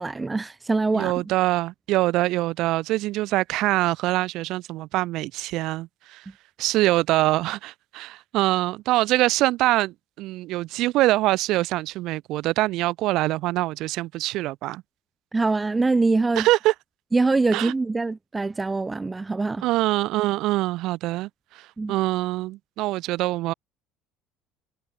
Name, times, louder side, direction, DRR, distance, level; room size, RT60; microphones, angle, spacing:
voice 1, 0.0-1.1 15.3-16.5 17.1-19.6 21.8-21.9, right 3 dB, 15° right, 1.7 m, -23 dB
voice 2, 0.9-6.3 6.6-14.8 16.4-16.7 17.5-17.7 19.6-23.5, right 17 dB, 60° right, 5.3 m, -24 dB
cardioid pair, 145°, 0 cm